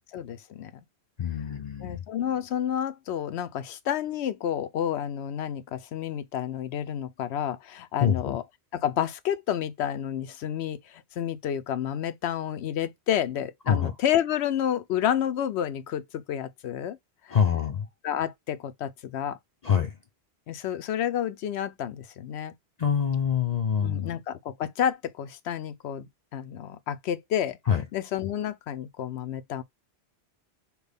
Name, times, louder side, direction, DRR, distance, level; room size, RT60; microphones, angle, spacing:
voice 1, 0.1-0.7 1.8-8.4 8.7-17.0 17.3-17.4 18.0-19.4 20.5-22.5 23.8-27.6 27.9-29.6, left 10 dB, 85° left, 0.9 m, -30 dB
voice 2, 1.2-2.1 8.0-8.4 13.7-13.9 17.3-17.9 19.6-20.0 22.8-24.1 27.7-27.8, left 8 dB, 50° left, 0.6 m, -25 dB
6.0 x 2.2 x 3.4 m
omnidirectional pair, 1.1 m